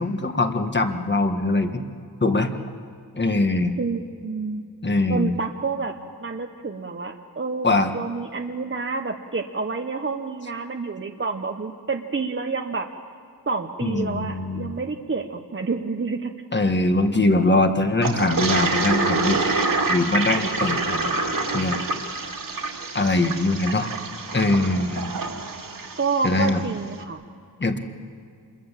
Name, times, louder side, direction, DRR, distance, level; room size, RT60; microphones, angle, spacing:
voice 1, 0.0-1.8 2.2-2.5 3.2-3.7 4.8-5.4 7.6-7.9 13.8-14.8 16.5-19.4 19.9-21.8 22.9-23.9 24.3-25.1 26.2-26.6 27.6-27.8, left 2 dB, 25° left, 7 dB, 1.6 m, -22 dB
voice 2, 3.8-4.6 5.1-12.9 13.5-16.3 26.0-27.2, right 4 dB, 30° right, 4 dB, 1.0 m, -28 dB
Toilet flush, 18.0-26.6, right 3 dB, 50° right, 2.5 m, -26 dB
27.0 x 22.0 x 7.5 m, 2.3 s
wide cardioid pair, 110°, 41 cm